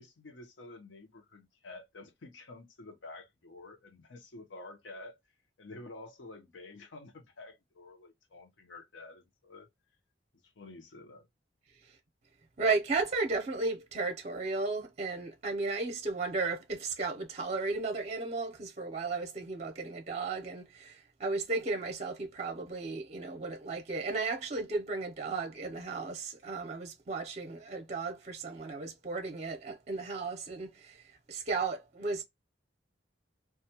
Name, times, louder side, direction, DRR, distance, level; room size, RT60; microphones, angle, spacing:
voice 1, 0.0-5.2 5.6-9.7 10.4-11.3, left 2 dB, 80° left, 0.7 m, -50 dB
voice 2, 12.6-31.0 31.3-32.2, right 3 dB, 40° right, 0.5 m, -34 dB
2.3 x 2.2 x 2.8 m
head